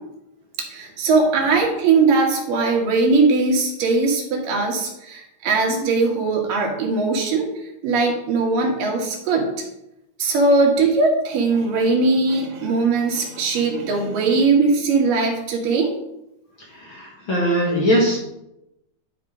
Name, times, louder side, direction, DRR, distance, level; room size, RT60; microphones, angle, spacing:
voice 1, 0.7-7.5 7.8-9.5 10.2-15.9, right 3 dB, 80° right, 0 dB, 3.2 m, -20 dB
voice 2, 16.7-18.2, equal, 50° left, -3 dB, 1.7 m, -20 dB
11.0 x 5.1 x 3.7 m, 0.87 s
omnidirectional pair, 3.8 m